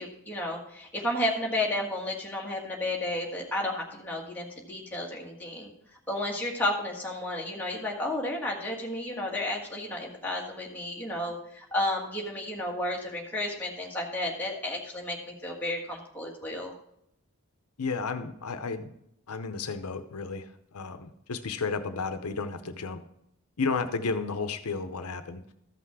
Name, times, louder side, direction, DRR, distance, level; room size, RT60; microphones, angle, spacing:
voice 1, 0.0-5.7 6.1-16.7, left 1 dB, 10° left, -3 dB, 1.6 m, -32 dB
voice 2, 17.8-18.9 19.3-23.0 23.6-25.5, left 4 dB, 85° left, 9 dB, 0.7 m, -32 dB
13.5 x 5.8 x 4.7 m, 0.76 s
head